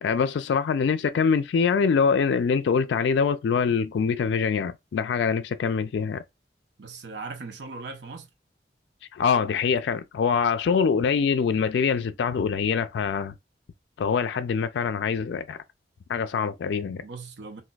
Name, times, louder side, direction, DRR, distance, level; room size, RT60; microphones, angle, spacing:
voice 1, 0.0-6.2 9.1-13.3 14.0-15.6 16.1-17.0, left 6 dB, 80° left, 0.3 m, -24 dB
voice 2, 6.8-8.3 17.0-17.6, right 3 dB, 75° right, 0.7 m, -38 dB
2.6 x 2.3 x 3.9 m
head